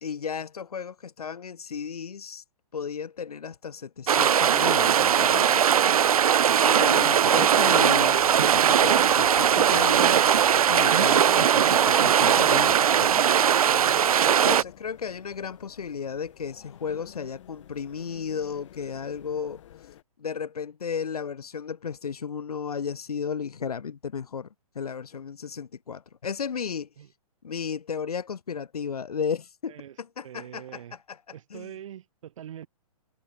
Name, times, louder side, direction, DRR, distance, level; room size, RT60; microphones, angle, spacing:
voice 1, 0.0-2.4 2.7-5.6 6.6-13.7 14.3-19.6 20.2-24.5 24.7-26.9 27.4-30.6 31.5-31.7, left 6 dB, 90° left, 1.3 m, -34 dB
sound 1, 4.1-14.6, right 9 dB, 75° right, 0.7 m, -20 dB
sound 2, 8.1-20.0, left 12 dB, 55° left, 6.3 m, -51 dB
voice 2, 13.6-14.1 27.0-27.1 29.7-30.0 30.2-31.0 31.3-32.7, right 10 dB, 60° right, 4.6 m, -44 dB
hypercardioid pair, 140°, 19 cm